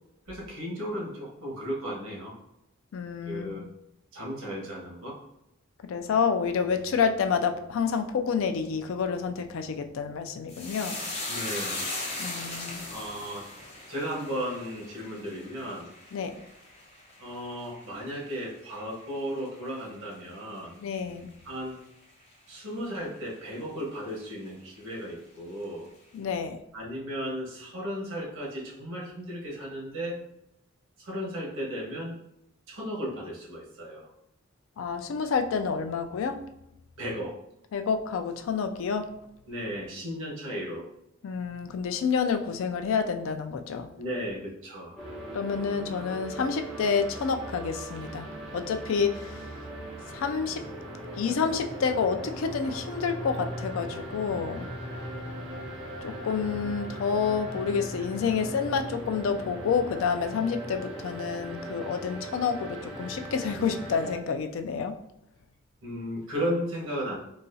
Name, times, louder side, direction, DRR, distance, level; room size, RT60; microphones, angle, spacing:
voice 1, 0.3-2.3 3.2-3.6 4.1-5.2 11.3-11.9 12.9-13.4 13.9-15.9 17.2-20.7 21.4-21.8 22.5-25.9 26.7-30.2 31.0-32.1 32.7-34.1 37.0-37.3 39.5-40.8 44.0-45.0 65.8-67.2, equal, 80° right, -3 dB, 1.2 m, -35 dB
voice 2, 2.9-3.6 5.9-11.0 12.2-12.8 16.1-16.4 20.8-21.3 26.1-26.6 34.8-36.4 37.7-39.1 41.2-43.9 45.3-49.4 50.1-50.6 51.2-54.7 56.0-65.0, left 6 dB, 70° left, 8 dB, 0.3 m, -29 dB
sound 1, 10.5-19.1 19.4-20.1 20.4-20.6, left 2 dB, 30° left, 0.7 m, -38 dB
sound 2, 45.0-64.2, right 1 dB, 5° right, 1.0 m, -39 dB
4.0 x 2.3 x 2.6 m, 0.83 s
head